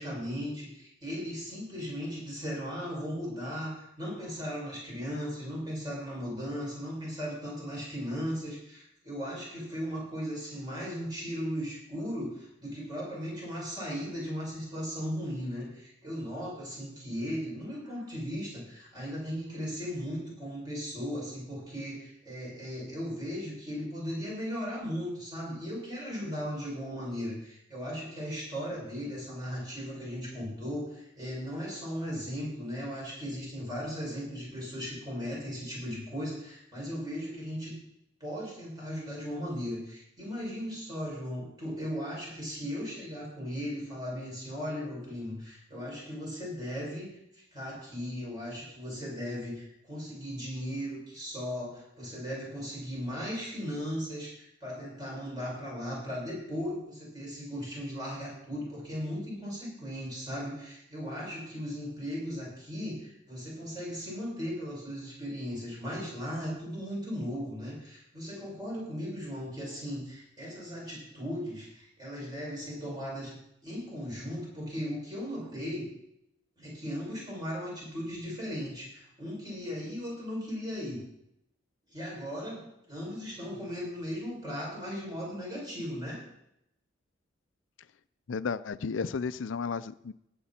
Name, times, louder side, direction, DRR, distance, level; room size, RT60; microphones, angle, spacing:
voice 1, 0.0-37.8 38.2-47.1 47.3-73.3 73.6-75.9 76.6-81.0 81.9-86.2, equal, 20° right, -4 dB, 6.4 m, -37 dB
voice 2, 88.3-90.1, left 5 dB, 90° left, 15 dB, 0.5 m, -33 dB
18.0 x 8.4 x 4.3 m, 0.77 s
head